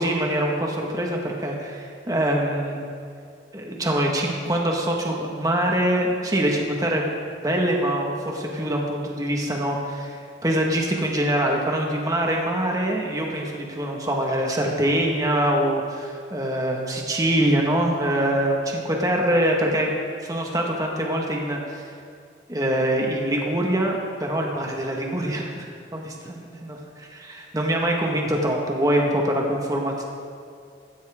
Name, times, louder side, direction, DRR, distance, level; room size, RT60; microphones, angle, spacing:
voice 1, 0.0-2.8 3.5-7.1 7.4-19.9 20.3-21.8 22.5-25.6 25.9-30.0, right 1 dB, 20° right, -1 dB, 1.7 m, -24 dB
16.0 x 15.5 x 3.7 m, 2.4 s
head